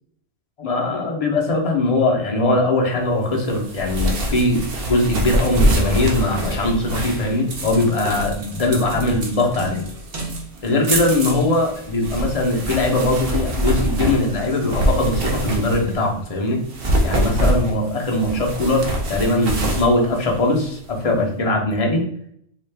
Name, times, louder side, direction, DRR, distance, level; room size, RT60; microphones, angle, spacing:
voice 1, 0.6-9.8 10.6-16.6 17.0-22.0, left 2 dB, 35° left, 0 dB, 0.7 m, -21 dB
sound 1, 3.4-16.1 16.6-20.9, right 1 dB, 55° right, 0.9 m, -24 dB
3.9 x 2.4 x 3.3 m, 0.68 s
omnidirectional pair, 1.3 m